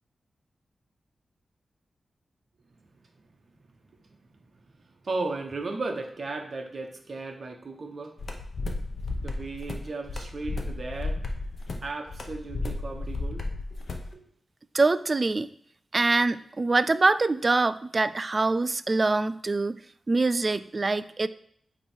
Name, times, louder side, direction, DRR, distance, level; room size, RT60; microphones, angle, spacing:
voice 1, 4.1-8.2 9.2-11.2 11.8-13.8 14.1-14.2, right 3 dB, 50° right, 4 dB, 1.0 m, -36 dB
sound 1, 8.2-14.1, left 2 dB, 55° left, 0.9 m, -33 dB
voice 2, 14.7-15.5 15.9-19.8 20.1-21.3, right 3 dB, 35° right, 14 dB, 0.3 m, -24 dB
8.7 x 3.0 x 4.4 m, 0.63 s
wide cardioid pair, 100°, 0 cm